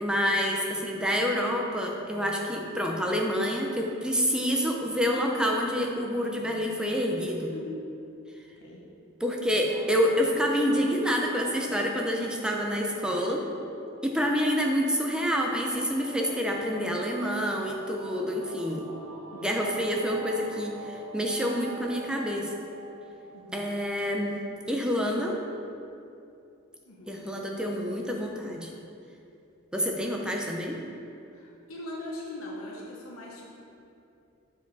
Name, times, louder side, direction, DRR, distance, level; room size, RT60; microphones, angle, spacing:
voice 1, 0.0-7.5 9.2-13.4 14.0-18.9 19.3-22.5 23.5-24.3 24.7-25.4 27.1-28.7 29.7-30.8, equal, 5° right, 0 dB, 0.5 m, -27 dB
sound 1, 9.6-24.9, right 2 dB, 80° right, 0.7 m, -46 dB
voice 2, 23.3-23.6 26.9-27.2 27.6-28.1 31.3-33.5, left 1 dB, 85° left, -4 dB, 0.9 m, -41 dB
6.9 x 4.8 x 4.0 m, 2.7 s
head